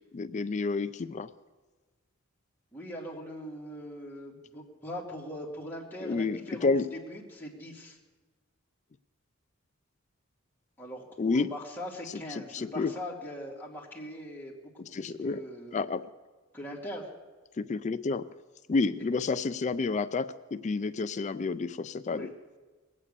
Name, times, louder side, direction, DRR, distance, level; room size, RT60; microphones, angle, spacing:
voice 1, 0.1-1.3 6.0-6.9 11.2-11.5 12.5-12.9 14.9-15.4 15.7-16.1 17.6-18.3 18.7-22.3, left 4 dB, 35° left, 13 dB, 0.4 m, -30 dB
voice 2, 2.7-6.8 7.1-8.0 10.8-15.8 16.5-17.1 22.1-22.3, equal, 10° left, -3 dB, 2.4 m, -41 dB
20.5 x 8.7 x 6.7 m, 1.3 s
head